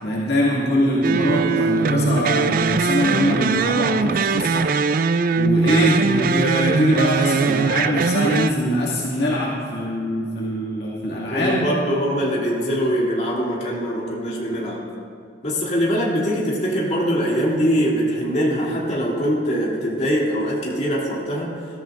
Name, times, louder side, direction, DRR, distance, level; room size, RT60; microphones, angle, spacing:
voice 1, 0.0-4.7 5.4-11.7, equal, 65° left, -6 dB, 2.2 m, -22 dB
sound 1, 1.0-8.5, right 4 dB, 50° right, 0.4 m, -21 dB
voice 2, 11.3-14.8 15.4-21.5, equal, 40° left, -5 dB, 2.9 m, -22 dB
21.0 x 13.5 x 2.6 m, 2.3 s
head